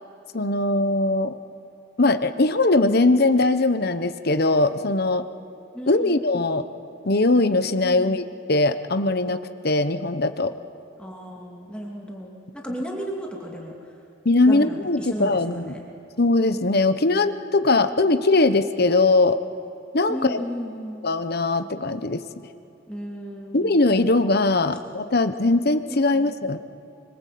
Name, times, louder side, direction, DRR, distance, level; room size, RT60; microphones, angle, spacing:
voice 1, 0.3-1.4 2.0-5.2 5.9-6.6 7.0-8.2 8.5-10.5 14.2-15.8 16.2-19.4 19.9-20.4 21.0-22.2 23.5-26.6, left 2 dB, 55° left, 10 dB, 1.1 m, -20 dB
voice 2, 5.7-6.5 7.8-8.2 11.0-12.3 12.5-13.7 14.5-15.8 20.1-21.0 22.9-23.8 25.9-26.3, equal, 5° left, -1 dB, 2.8 m, -34 dB
25.0 x 24.5 x 8.6 m, 2.6 s
head